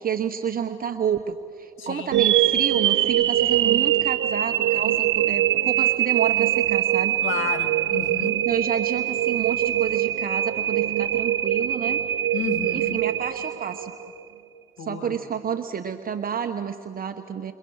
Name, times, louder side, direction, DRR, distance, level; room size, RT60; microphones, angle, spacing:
voice 1, 0.0-7.1 8.4-12.0 12.7-13.9 14.8-17.5, right 8 dB, 45° right, 6 dB, 1.1 m, -29 dB
voice 2, 1.8-2.2 7.2-8.4 12.3-13.0 14.8-15.2, left 7 dB, 70° left, 6 dB, 2.8 m, -32 dB
sound 1, 2.1-14.2, right 12 dB, 65° right, 1.0 m, -23 dB
29.0 x 25.5 x 6.5 m, 2.8 s
supercardioid pair, 70°, 21 cm